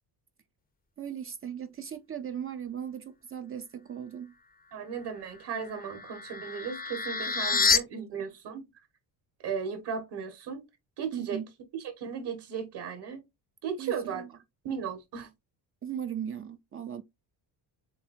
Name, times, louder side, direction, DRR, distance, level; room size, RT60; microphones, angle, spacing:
voice 1, 1.0-4.3 7.3-8.2 11.1-11.5 13.8-14.3 15.8-17.0, right 9 dB, 30° right, 0.4 m, -38 dB
voice 2, 4.7-8.7 9.4-10.6 11.0-11.4 11.7-13.2 13.6-14.2 14.6-15.3, right 6 dB, 65° right, 1.7 m, -36 dB
sound 1, 5.5-7.8, left 5 dB, 20° left, 0.5 m, -28 dB
7.2 x 2.4 x 2.6 m
cardioid pair, 140°, 43 cm